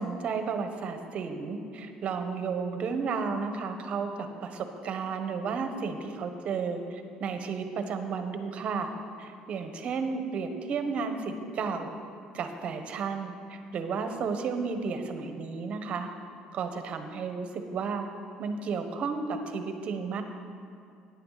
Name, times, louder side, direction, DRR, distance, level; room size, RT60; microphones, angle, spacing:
voice 1, 0.0-8.9 9.2-11.9 12.3-16.1 16.5-18.1 18.4-20.2, right 5 dB, 50° right, 7 dB, 1.2 m, -33 dB
14.0 x 9.8 x 4.1 m, 2.5 s
supercardioid pair, 100°, 3 cm